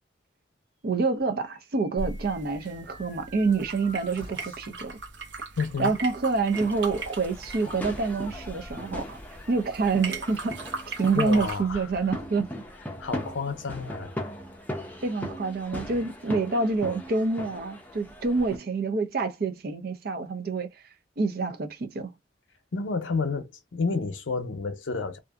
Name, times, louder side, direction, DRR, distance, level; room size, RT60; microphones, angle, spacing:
voice 1, 0.8-5.0 5.8-9.2 9.5-10.6 10.9-12.5 15.0-20.7 21.2-22.1, right 4 dB, 55° right, 0.5 m, -27 dB
sound 1, 1.3-4.8, right 1 dB, 25° right, 1.1 m, -49 dB
sound 2, 2.0-11.6, right 3 dB, 75° right, 0.8 m, -39 dB
voice 2, 5.6-5.9 11.1-11.9 13.0-14.2 22.7-25.2, left 4 dB, 85° left, 0.6 m, -30 dB
sound 3, 6.5-18.6, left 1 dB, 10° left, 0.5 m, -39 dB
2.6 x 2.4 x 2.3 m
head